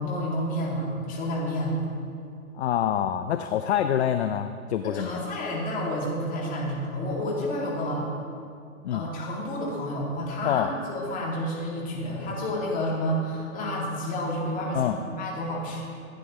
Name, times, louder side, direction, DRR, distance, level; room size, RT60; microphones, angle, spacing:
voice 1, 0.0-1.8 4.8-8.1 8.9-15.9, equal, 20° left, -4 dB, 2.5 m, -30 dB
voice 2, 2.5-5.3 8.8-9.0 10.4-10.7 14.7-15.0, left 10 dB, 50° left, 9 dB, 0.5 m, -26 dB
15.0 x 9.1 x 3.1 m, 2.4 s
hypercardioid pair, 130°, 44 cm